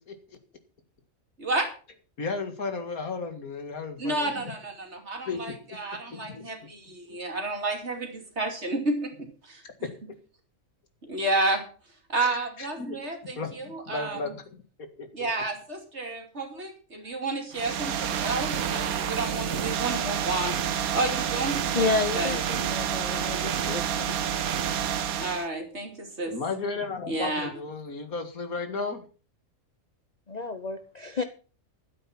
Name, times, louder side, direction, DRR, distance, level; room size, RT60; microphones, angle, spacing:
voice 1, 2.2-4.5 5.3-5.8 6.1-6.5 12.2-13.0 13.4-13.5 13.9-14.4 15.0-15.3 26.3-29.0, left 4 dB, 85° left, 2.4 m, -34 dB
voice 2, 4.0-9.9 11.0-11.6 12.1-14.3 15.1-20.6 20.9-21.9 22.1-22.4 25.2-26.3 27.1-27.5, right 2 dB, 50° right, 3.1 m, -31 dB
sound 1, 17.5-25.5, right 8 dB, 85° right, 1.3 m, -29 dB
voice 3, 21.7-24.3 30.3-31.2, left 3 dB, 35° left, 0.9 m, -30 dB
12.5 x 9.1 x 5.9 m
omnidirectional pair, 1.5 m